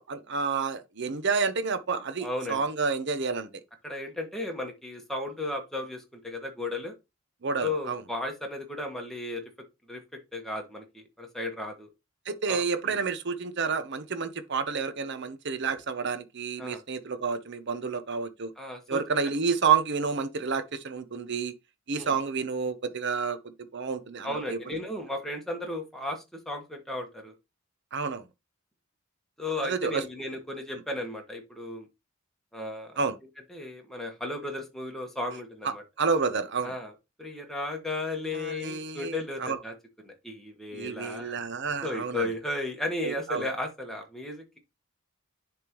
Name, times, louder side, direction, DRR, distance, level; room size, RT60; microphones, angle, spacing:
voice 1, 0.0-3.5 7.4-8.0 12.3-18.5 18.9-21.5 21.9-23.4 23.7-24.6 27.9-28.3 29.6-30.0 33.0-33.1 35.6-36.7 38.3-39.6 40.7-42.3 43.0-43.4, right 5 dB, 60° right, 0.8 m, -29 dB
voice 2, 2.2-2.6 3.8-6.9 7.6-9.4 9.9-11.9 12.5-13.0 16.6-16.8 18.6-19.0 21.9-22.2 24.2-27.3 29.4-31.9 32.5-33.0 33.5-35.8 36.6-36.9 37.2-39.7 40.0-41.4 41.8-44.6, left 2 dB, ahead, 1.3 m, -35 dB
10.5 x 3.5 x 3.0 m
head